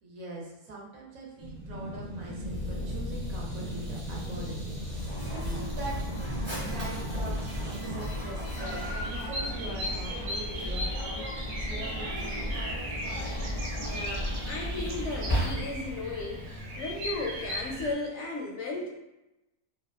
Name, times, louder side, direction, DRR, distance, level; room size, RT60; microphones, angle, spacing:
voice 1, 0.0-6.0 6.5-12.8, right 2 dB, 70° right, -2 dB, 1.0 m, -43 dB
sound 1, 1.4-9.4, equal, 45° right, 0.7 m, -37 dB
Mechanisms, 4.8-16.0, equal, 15° right, 0.4 m, -34 dB
Bird vocalization bird call bird song, 8.6-17.9, equal, 85° right, 1.1 m, -37 dB
voice 2, 13.8-18.9, left 2 dB, 70° left, -1 dB, 0.7 m, -35 dB
2.7 x 2.1 x 2.3 m, 0.94 s
omnidirectional pair, 1.6 m